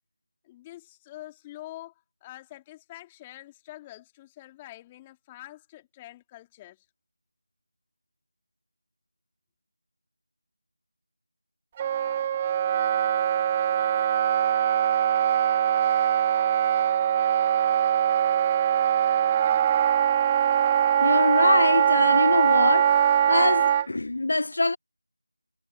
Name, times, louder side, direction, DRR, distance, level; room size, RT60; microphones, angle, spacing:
voice 1, 0.4-1.9 2.2-6.8, left 15 dB, 10° left, 3.5 m, -45 dB
Wind instrument woodwind instrument, 11.8-23.9, right 9 dB, 15° right, 0.3 m, -22 dB
voice 2, 21.0-23.0 23.3-24.8, left 2 dB, 50° left, 1.3 m, -23 dB
figure-of-eight pair, 170°, 0 cm